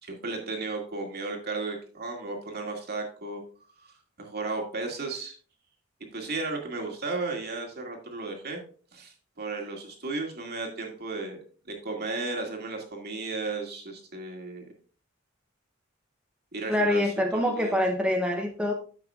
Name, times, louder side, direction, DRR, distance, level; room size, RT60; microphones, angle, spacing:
voice 1, 0.0-3.4 3.8-5.4 6.1-8.6 8.9-11.4 11.7-14.6 16.5-17.0 17.3-17.7, right 3 dB, 50° right, 1 dB, 2.2 m, -34 dB
voice 2, 16.7-18.7, left 1 dB, 5° right, 1 dB, 0.7 m, -25 dB
10.5 x 7.4 x 2.4 m, 0.41 s
head